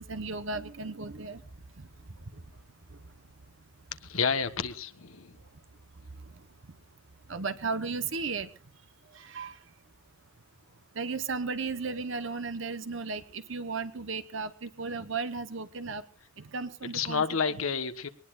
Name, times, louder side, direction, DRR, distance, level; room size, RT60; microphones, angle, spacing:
voice 1, 0.0-1.4 1.8-1.9 7.3-8.5 9.1-9.6 11.0-16.0 16.4-17.6, right 4 dB, 60° right, 10 dB, 1.0 m, -35 dB
voice 2, 4.0-5.4 16.8-18.1, left 6 dB, 80° left, 10 dB, 1.3 m, -30 dB
22.5 x 19.0 x 2.5 m, 0.37 s
head